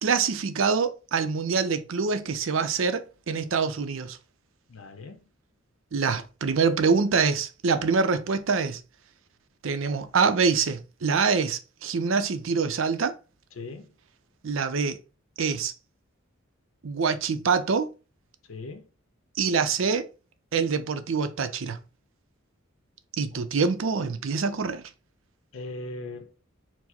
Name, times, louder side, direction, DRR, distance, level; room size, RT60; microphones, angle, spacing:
voice 1, 0.0-4.2 5.9-8.8 9.6-13.1 14.4-15.0 15.4-15.7 16.8-17.9 19.4-20.1 20.5-21.8 23.2-24.8, right 5 dB, 70° right, 0.5 m, -25 dB
voice 2, 4.7-5.3 13.6-14.0 18.5-18.9 23.3-23.7 25.5-26.3, left 2 dB, 80° left, 0.6 m, -39 dB
4.6 x 2.0 x 4.2 m
head